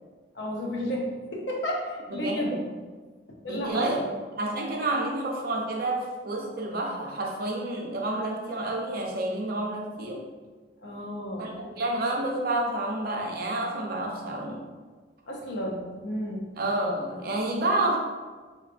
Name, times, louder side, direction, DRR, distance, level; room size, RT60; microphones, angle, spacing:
voice 1, 0.3-2.6 3.4-4.1 10.8-11.5 15.3-16.5, equal, 75° left, -1 dB, 0.7 m, -32 dB
voice 2, 2.1-2.6 3.5-4.1 4.4-10.2 11.4-14.6 16.6-18.0, right 2 dB, 55° right, 0 dB, 0.6 m, -29 dB
4.4 x 3.0 x 2.4 m, 1.4 s
head